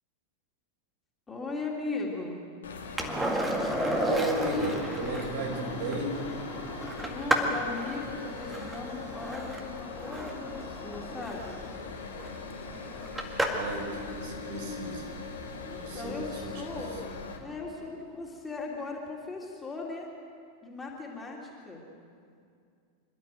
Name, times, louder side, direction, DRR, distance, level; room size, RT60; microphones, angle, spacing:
voice 1, 1.3-2.4 7.1-11.6 15.6-20.1 20.6-21.8, left 3 dB, 10° left, -2 dB, 3.5 m, -38 dB
sound 1, 2.6-17.4, left 4 dB, 65° left, 2.5 m, -41 dB
Skateboard, 3.0-13.8 16.4-16.5, right 1 dB, 10° right, 2.0 m, -33 dB
voice 2, 3.9-6.2 13.5-15.1 15.8-16.9, right 2 dB, 55° right, 0 dB, 5.0 m, -34 dB
27.0 x 12.5 x 7.9 m, 2.3 s
figure-of-eight pair, 90°, 0 cm